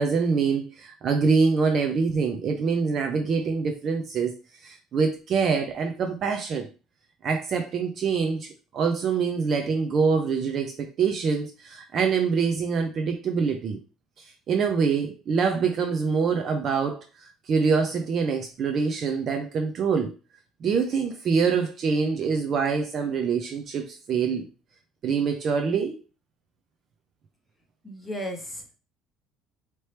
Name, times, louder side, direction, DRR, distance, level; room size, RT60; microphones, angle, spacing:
voice 1, 0.0-4.3 4.6-6.7 7.2-13.8 14.5-17.0 17.5-20.1 20.6-24.4 25.0-26.0, right 5 dB, 35° right, 0.5 m, -25 dB
voice 2, 27.8-28.8, equal, 5° left, 0.9 m, -35 dB
4.4 x 2.9 x 3.2 m
cardioid pair, 175°, 0 cm